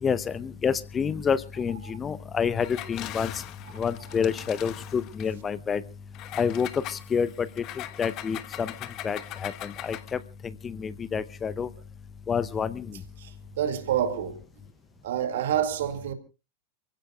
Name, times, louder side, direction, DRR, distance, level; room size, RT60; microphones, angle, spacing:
voice 1, 0.0-3.4 3.7-5.8 6.4-8.7 9.0-11.7 12.3-13.0, left 6 dB, 20° left, 0.7 m, -28 dB
Engine, 2.6-5.3 6.1-10.2, left 13 dB, 35° left, 1.0 m, -40 dB
voice 2, 13.2-14.4 15.0-16.1, right 10 dB, 60° right, 2.1 m, -28 dB
29.0 x 16.0 x 2.3 m
figure-of-eight pair, 90°, 0 cm